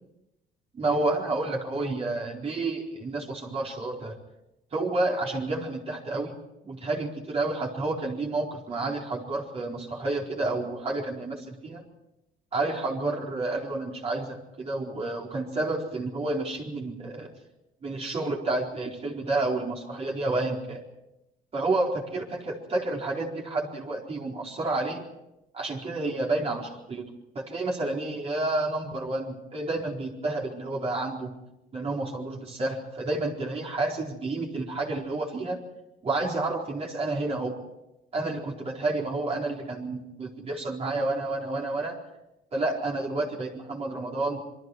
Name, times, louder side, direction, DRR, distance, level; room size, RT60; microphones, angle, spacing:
voice 1, 0.7-4.2 4.7-6.4 6.6-11.8 12.5-17.3 17.8-20.8 21.5-25.0 25.5-27.1 27.3-31.3 31.7-35.6 36.0-37.6 38.1-42.0 42.5-44.4, right 2 dB, 35° right, -1 dB, 4.3 m, -30 dB
27.0 x 23.0 x 4.8 m, 0.90 s
cardioid pair, 110°, 17 cm